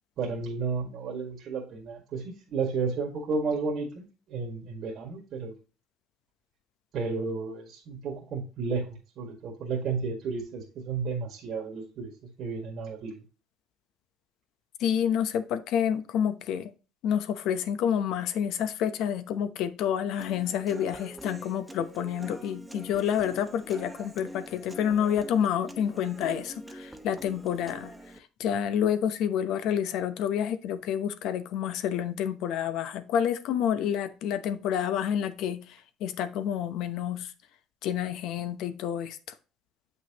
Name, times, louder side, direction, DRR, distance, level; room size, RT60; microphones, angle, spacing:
voice 1, 0.2-5.5 6.9-12.1 12.4-13.2, right 4 dB, 55° right, 0 dB, 1.8 m, -32 dB
voice 2, 14.8-16.7 17.0-27.9 28.4-37.3 37.8-39.2, left 9 dB, 70° left, 10 dB, 0.9 m, -29 dB
Human voice / Acoustic guitar, 20.2-28.2, right 1 dB, 10° right, 0.9 m, -45 dB
7.5 x 5.7 x 3.0 m, 0.34 s
supercardioid pair, 105°, 0 cm